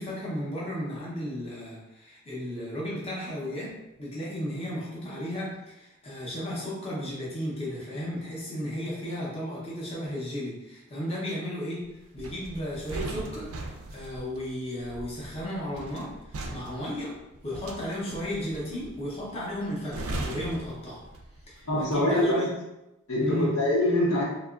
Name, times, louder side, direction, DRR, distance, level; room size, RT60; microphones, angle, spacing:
voice 1, 0.0-3.7 4.0-17.1 17.4-21.0 21.5-22.5 23.2-23.6, equal, 30° left, -6 dB, 0.6 m, -34 dB
sound 1, 12.2-21.5 21.8-22.1, right 2 dB, 75° right, 0.4 m, -39 dB
voice 2, 21.7-22.4 23.1-24.2, left 1 dB, 80° left, -5 dB, 0.9 m, -24 dB
2.8 x 2.3 x 2.4 m, 0.94 s
head